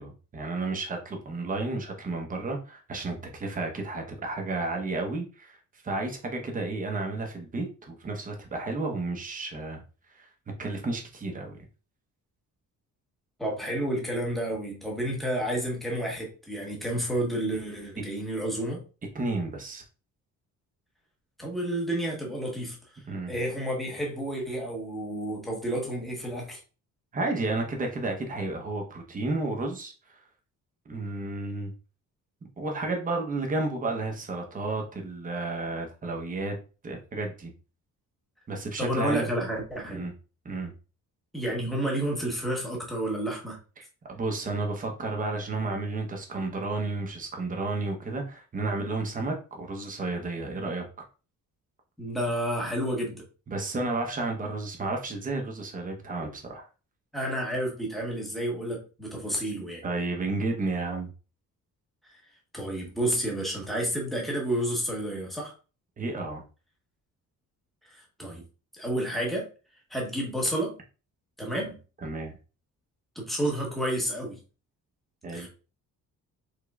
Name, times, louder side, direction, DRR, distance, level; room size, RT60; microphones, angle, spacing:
voice 1, 0.0-5.6 5.8-9.8 10.1-10.3 10.6-11.6 19.1-19.8 23.1-23.3 27.1-30.2 30.9-31.7 32.6-36.5 36.8-37.5 38.5-39.3 39.9-40.1 40.4-40.7 43.8-50.8 53.5-56.7 59.8-61.1 66.0-66.4 72.0-72.4 75.2-75.5, right 3 dB, 25° right, 2 dB, 0.9 m, -32 dB
voice 2, 13.4-18.8 21.4-26.6 38.8-40.1 41.3-43.6 52.0-53.2 57.1-59.8 62.1-62.2 62.5-65.5 67.9-68.4 68.8-69.5 69.9-70.8 71.4-71.8 73.1-74.4 75.3-75.5, right 1 dB, ahead, -2 dB, 1.1 m, -30 dB
5.0 x 3.8 x 2.3 m, 0.34 s
cardioid pair, 165°, 33 cm